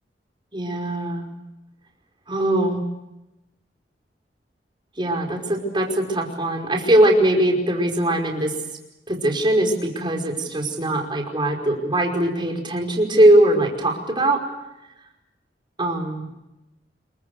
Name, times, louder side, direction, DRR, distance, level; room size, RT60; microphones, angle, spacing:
voice 1, 0.5-1.3 2.3-2.8 5.0-8.6 9.1-14.4 15.8-16.3, right 1 dB, 30° right, 2 dB, 5.2 m, -21 dB
27.5 x 23.5 x 6.7 m, 0.95 s
head